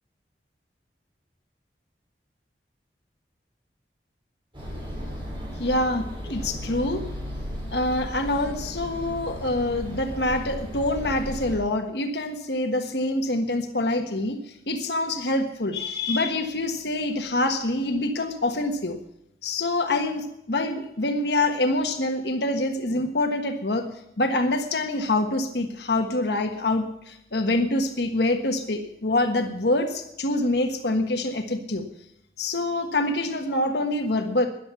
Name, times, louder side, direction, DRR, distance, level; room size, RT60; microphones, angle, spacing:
sound 1, 4.5-11.6, equal, 30° right, 7.0 m, -35 dB
voice 1, 5.6-7.0 7.7-14.4 14.7-19.0 19.4-23.9 24.2-31.8 32.4-34.5, left 2 dB, 75° left, 5 dB, 1.5 m, -25 dB
13.5 x 10.5 x 7.0 m, 0.79 s
head